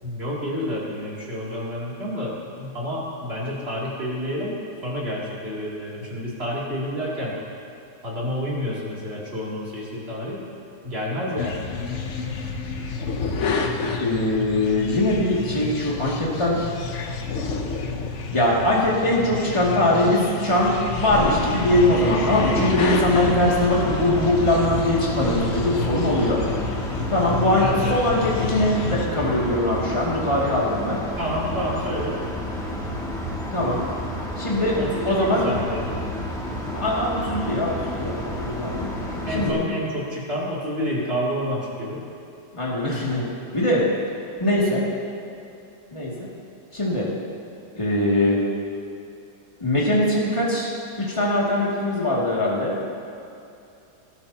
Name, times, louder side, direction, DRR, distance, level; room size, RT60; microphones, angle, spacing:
voice 1, 0.0-4.5 4.8-7.3 8.0-10.4 10.8-11.7 27.5-28.0 31.2-32.2 34.8-36.1 39.2-42.0, equal, 35° right, -6 dB, 3.0 m, -29 dB
sound 1, 11.4-29.1, left 4 dB, 55° left, 1.0 m, -29 dB
voice 2, 14.0-16.6 18.3-26.4 27.1-31.0 33.5-33.8 34.4-34.8 35.0-35.5 36.7-38.9 39.3-39.6 42.5-43.3 43.5-43.8 44.4-44.9 45.9-46.1 46.7-47.1 47.7-48.4 49.6-50.7 51.0-52.7, left 1 dB, 20° left, -6 dB, 2.3 m, -21 dB
sound 2, 21.1-39.5, equal, ahead, 1.7 m, -31 dB
19.5 x 12.0 x 2.9 m, 2.7 s
omnidirectional pair, 1.7 m